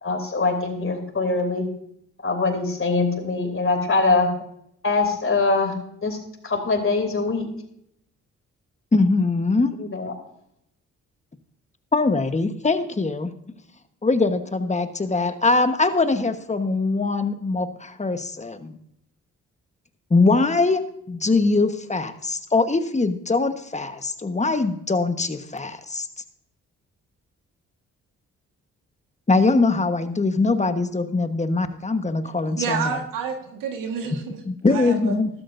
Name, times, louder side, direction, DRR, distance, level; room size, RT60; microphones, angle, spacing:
voice 1, 0.0-1.7 2.2-4.3 4.8-5.7 6.0-6.2 6.4-7.5 9.8-10.1, left 3 dB, 40° left, 5 dB, 3.0 m, -23 dB
voice 2, 8.9-9.7 11.9-13.3 14.0-18.8 20.1-26.1 29.3-33.0 34.5-35.3, left 3 dB, 20° left, 9 dB, 1.2 m, -22 dB
voice 3, 32.6-34.4 34.7-35.1, right 6 dB, 80° right, 3 dB, 1.7 m, -29 dB
13.0 x 13.0 x 2.6 m, 0.75 s
supercardioid pair, 50°, 32 cm